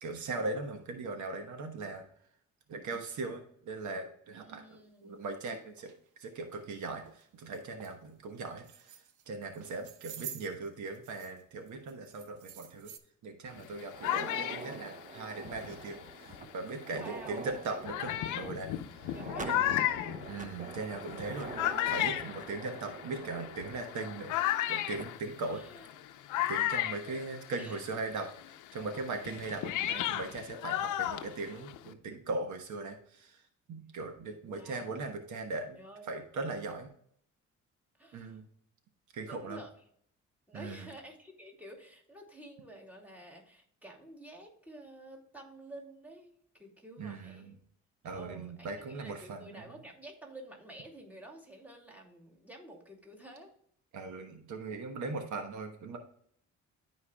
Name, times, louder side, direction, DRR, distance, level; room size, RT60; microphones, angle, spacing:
voice 1, 0.0-2.0 2.7-5.9 6.2-8.6 9.3-12.9 13.2-19.1 19.4-19.7 20.3-25.6 26.5-28.3 28.7-33.4 33.7-35.8 36.1-36.9 38.1-38.4 39.1-39.6 40.5-40.9 47.0-47.5 48.0-49.6 53.9-56.0, right 3 dB, 70° right, 5 dB, 1.2 m, -39 dB
voice 2, 4.4-5.2 16.9-17.5 19.1-19.7 25.5-25.8 27.5-27.8 34.5-35.0 35.7-36.1 38.0-38.4 39.2-39.7 40.5-47.5 48.1-53.5, right 1 dB, 5° right, -1 dB, 2.3 m, -50 dB
sound 1, 5.2-5.3 5.8-5.9 6.4-6.6 7.1-7.2 7.5-8.0 8.5-9.2 9.5-11.4 11.7-13.0, right 9 dB, 90° right, 0.9 m, -48 dB
sound 2, 13.6-16.6 17.3-17.4 17.9-27.9 28.2-31.9, left 13 dB, 90° left, 0.7 m, -34 dB
sound 3, 13.8-24.6 24.9-25.0 25.8-25.9 26.5-26.6 27.9-28.2, right 3 dB, 25° right, 0.7 m, -45 dB
13.0 x 4.6 x 2.2 m, 0.64 s
cardioid pair, 90°, 30 cm